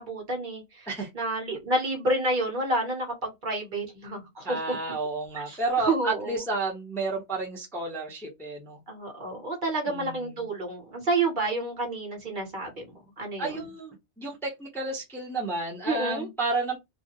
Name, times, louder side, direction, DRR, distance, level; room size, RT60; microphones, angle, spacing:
voice 1, 0.0-0.9 1.1-4.8 5.5-5.6 5.9-6.4 8.9-12.9 13.2-13.5 15.9-16.3, right 2 dB, 50° right, 1.0 m, -29 dB
voice 2, 4.4-8.8 9.9-10.5 13.4-16.8, right 3 dB, 5° left, 0.7 m, -31 dB
2.4 x 2.1 x 2.7 m
omnidirectional pair, 1.2 m